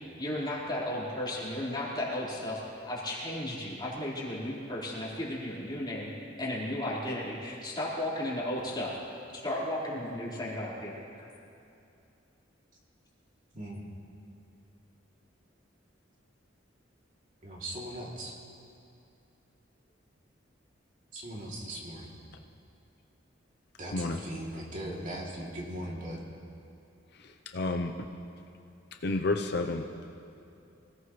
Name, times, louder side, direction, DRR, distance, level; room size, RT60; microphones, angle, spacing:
voice 1, 0.2-6.1 6.4-8.9 9.3-11.3, left 1 dB, 25° left, -8 dB, 4.5 m, -34 dB
voice 2, 17.4-18.4 21.1-22.1 23.8-26.2, right 1 dB, 45° right, -4 dB, 2.9 m, -39 dB
voice 3, 27.2-28.1 29.0-29.9, left 2 dB, 60° left, 4 dB, 0.7 m, -31 dB
25.5 x 17.0 x 3.2 m, 2.7 s
head